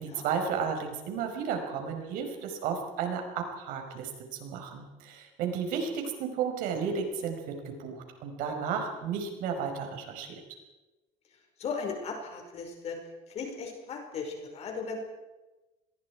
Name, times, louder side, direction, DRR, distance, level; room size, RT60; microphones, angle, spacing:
voice 1, 0.0-4.1 4.4-10.3, right 6 dB, 75° right, 4 dB, 5.1 m, -33 dB
voice 2, 11.6-13.0 13.3-15.0, left 5 dB, 50° left, 2 dB, 5.2 m, -37 dB
28.0 x 21.5 x 4.9 m, 1.1 s
cardioid pair, 120°, 14 cm